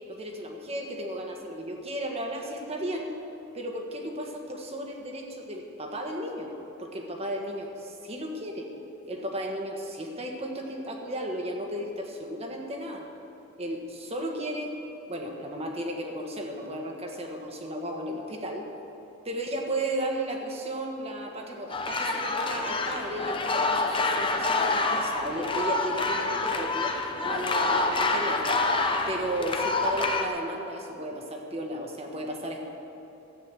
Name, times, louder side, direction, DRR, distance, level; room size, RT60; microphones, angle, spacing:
voice 1, 0.1-3.1 3.5-6.5 6.8-8.7 9.1-13.1 13.6-14.7 15.1-18.7 19.2-28.6 29.1-32.6, right 1 dB, 30° right, 2 dB, 1.4 m, -34 dB
sound 1, 21.7-30.3, left 3 dB, 25° left, 0.8 m, -27 dB
13.0 x 8.9 x 7.6 m, 2.9 s
head